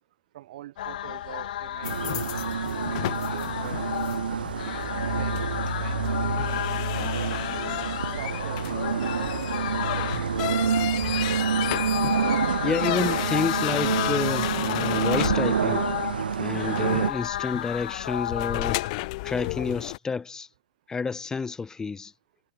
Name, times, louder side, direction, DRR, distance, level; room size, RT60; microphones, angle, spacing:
voice 1, 0.3-4.1 5.1-5.4 5.8-7.3 8.2-11.0, right 14 dB, 60° right, 4.8 m, -45 dB
sound 1, 0.8-18.9, left 12 dB, 65° left, 3.9 m, -33 dB
sound 2, 1.8-20.0, left 23 dB, 50° left, 2.7 m, -34 dB
sound 3, 1.8-17.1, right 7 dB, 90° right, 0.5 m, -28 dB
voice 2, 12.3-15.8 16.4-18.8 19.2-20.5 20.9-22.1, left 5 dB, 10° left, 2.9 m, -30 dB
hypercardioid pair, 125°, 5 cm